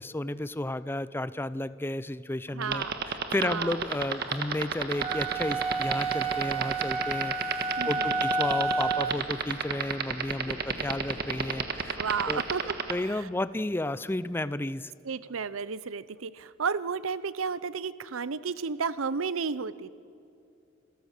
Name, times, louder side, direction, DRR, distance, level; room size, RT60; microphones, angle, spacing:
voice 1, 0.0-2.8 3.3-7.3 7.8-12.0 12.3-12.4 12.9-14.9, left 1 dB, 10° left, 15 dB, 0.5 m, -32 dB
voice 2, 2.5-3.0 3.4-3.8 7.8-8.2 12.0-12.7 13.0-13.3 15.0-19.9, right 5 dB, 85° right, 17 dB, 0.7 m, -32 dB
sound 1, 2.6-12.9, right 6 dB, 50° right, 1.5 m, -28 dB
sound 2, 5.0-9.2, right 3 dB, 30° right, 1.6 m, -30 dB
27.5 x 14.5 x 6.6 m, 2.6 s
head